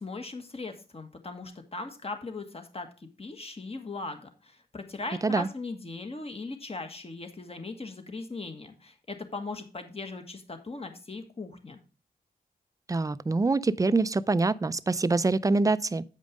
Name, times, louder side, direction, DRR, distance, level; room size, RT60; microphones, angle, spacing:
voice 1, 0.0-11.8, left 3 dB, 35° left, 1.5 m, -39 dB
voice 2, 12.9-16.0, right 3 dB, 20° right, 0.4 m, -25 dB
8.2 x 5.2 x 5.1 m
cardioid pair, 65°, 16 cm